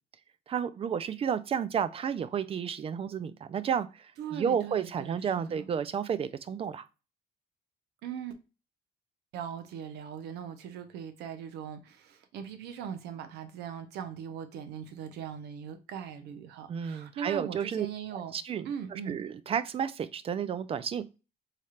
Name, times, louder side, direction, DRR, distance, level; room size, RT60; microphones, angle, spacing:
voice 1, 0.5-6.9 16.7-17.9 18.1-21.0, right 8 dB, 35° right, 0.4 m, -32 dB
voice 2, 4.2-5.6 8.0-8.3 9.3-18.3 18.6-19.2, right 8 dB, 80° right, 0.7 m, -40 dB
3.2 x 2.4 x 4.3 m
cardioid pair, 110°, 17 cm